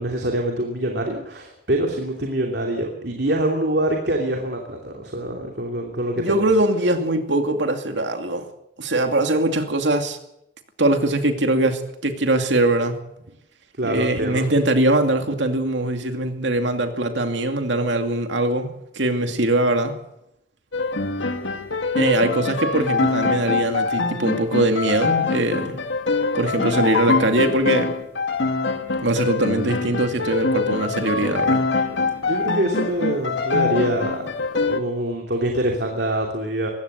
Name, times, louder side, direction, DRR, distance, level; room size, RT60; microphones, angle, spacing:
voice 1, 0.0-6.4 13.8-14.5 32.0-36.7, right 1 dB, 60° right, 2 dB, 2.9 m, -25 dB
voice 2, 6.2-8.5 8.8-10.2 10.8-13.1 13.8-19.9 22.0-25.8 26.3-27.9 29.0-31.6, right 1 dB, 80° right, 6 dB, 2.5 m, -22 dB
sound 1, 20.7-34.8, left 3 dB, 90° left, 2.0 m, -24 dB
21.5 x 16.5 x 8.1 m, 0.82 s
head